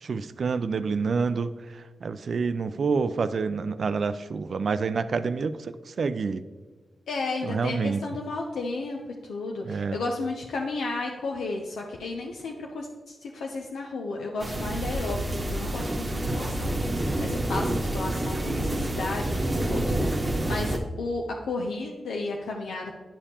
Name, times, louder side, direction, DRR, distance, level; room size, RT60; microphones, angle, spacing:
voice 1, 0.0-6.4 7.4-8.0 9.6-10.0, right 5 dB, 65° right, 12 dB, 0.3 m, -28 dB
voice 2, 7.1-22.9, left 3 dB, 85° left, 0 dB, 0.5 m, -33 dB
sound 1, 14.4-20.8, right 1 dB, 35° right, 1.0 m, -28 dB
9.9 x 5.1 x 2.8 m, 1.3 s
cardioid pair, 50°, 0 cm